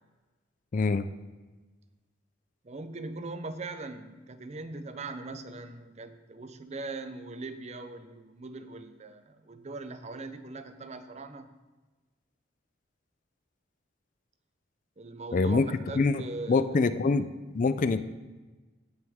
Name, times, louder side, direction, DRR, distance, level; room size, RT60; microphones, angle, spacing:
voice 1, 0.7-1.1 15.3-15.7 16.0-16.2 16.5-17.3 17.5-18.0, left 4 dB, 40° left, 12 dB, 0.4 m, -24 dB
voice 2, 2.6-11.5 15.0-16.8, right 3 dB, 35° right, 10 dB, 0.6 m, -40 dB
16.5 x 6.3 x 3.6 m, 1.2 s
head